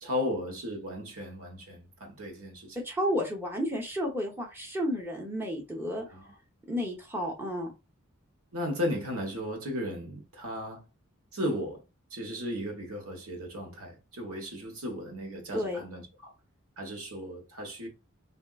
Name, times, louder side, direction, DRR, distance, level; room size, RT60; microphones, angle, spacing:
voice 1, 0.0-2.8 6.1-6.2 8.5-10.8 11.3-11.8 12.1-16.1 16.8-17.9, equal, 85° right, 1.3 m, -35 dB
voice 2, 2.7-6.0 6.7-7.7 15.5-15.8, equal, 10° right, 0.9 m, -32 dB
3.6 x 2.6 x 2.4 m
head